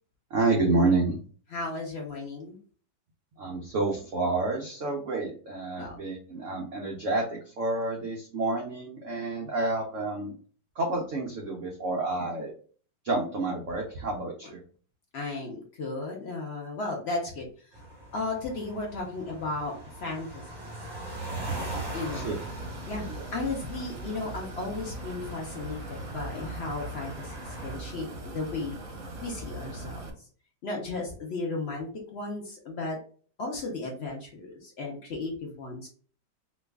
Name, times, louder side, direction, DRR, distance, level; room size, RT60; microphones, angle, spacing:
voice 1, 0.3-1.2 3.4-10.3 10.8-12.5 13.0-14.6 22.1-22.4 23.0-23.2, right 2 dB, 90° right, -2 dB, 0.6 m, -29 dB
voice 2, 1.5-2.6 5.8-6.0 9.4-9.5 15.1-17.5 18.1-19.7 20.0-20.7 21.9-22.3 22.9-23.1 23.3-28.8 29.2-30.0 30.6-33.0 33.4-35.9, left 3 dB, 70° left, 0 dB, 0.6 m, -35 dB
sound 1, 17.7-27.8, right 2 dB, 20° right, 0.6 m, -41 dB
sound 2, 21.5-30.1, right 2 dB, 55° right, 0.9 m, -40 dB
3.0 x 2.3 x 3.4 m, 0.43 s
omnidirectional pair, 2.1 m